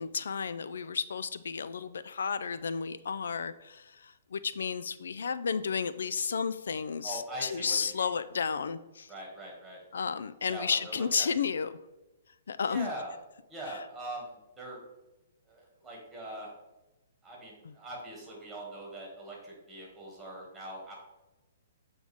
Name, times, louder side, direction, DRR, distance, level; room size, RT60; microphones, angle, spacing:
voice 1, 0.0-9.1 9.9-11.7 12.5-12.9 13.7-13.8 17.6-17.7, left 6 dB, 80° left, 14 dB, 0.3 m, -32 dB
voice 2, 7.0-8.1 9.1-9.8 10.5-11.3 12.7-13.1 13.5-14.8 15.5-16.5 17.2-20.9, right 1 dB, 10° right, -2 dB, 2.0 m, -42 dB
7.8 x 3.8 x 3.5 m, 1.0 s
hypercardioid pair, 150°, 0 cm